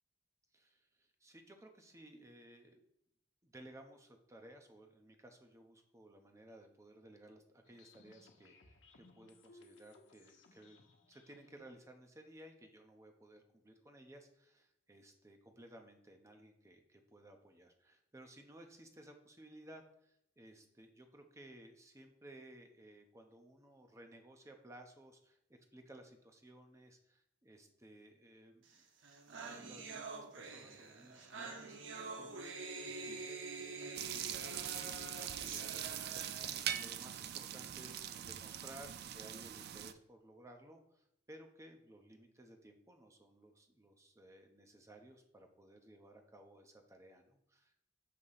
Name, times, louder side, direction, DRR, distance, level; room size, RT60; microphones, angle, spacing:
voice 1, 0.5-2.8 3.4-10.8 11.1-28.8 29.3-47.8, right 1 dB, 15° right, 4 dB, 0.7 m, -58 dB
sound 1, 7.6-11.6, left 3 dB, 70° left, 0.9 m, -64 dB
sound 2, 28.8-28.9 29.0-36.6, right 3 dB, 80° right, 0.7 m, -46 dB
sound 3, 34.0-39.9, right 10 dB, 55° right, 0.3 m, -42 dB
6.6 x 3.0 x 5.5 m, 0.77 s
head